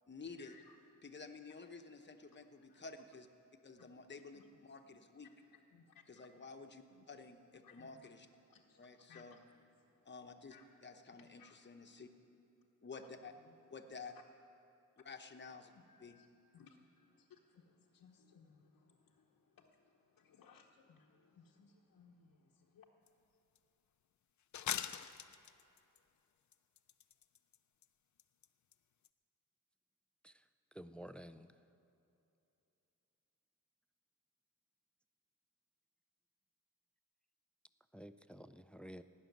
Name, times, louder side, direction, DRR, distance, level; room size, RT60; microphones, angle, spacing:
voice 1, 0.1-0.6 1.0-3.3 3.6-5.3 6.1-8.3 8.8-9.4 10.0-10.6 10.8-12.1 12.8-13.3 13.7-14.1 15.0-15.7 16.0-16.2, left 4 dB, 30° left, 6 dB, 0.9 m, -52 dB
voice 2, 5.5-6.2 6.9-7.0 7.6-8.1 8.5-8.8 9.1-9.4 10.5-10.6 11.0-11.6 11.8-11.9 13.5-13.6 15.7-16.3 16.5-22.9, left 6 dB, 85° left, -1 dB, 0.9 m, -64 dB
sound 1, 23.1-23.2 23.5-23.6 24.5-26.0 26.5-27.6 27.8-27.9 28.2-28.5 28.7-28.8 29.0-29.1, left 9 dB, 55° left, 0.5 m, -42 dB
voice 3, 30.8-31.5 37.9-39.0, equal, 5° left, 12 dB, 0.3 m, -51 dB
17.5 x 6.4 x 9.2 m, 2.8 s
wide cardioid pair, 105°, 34 cm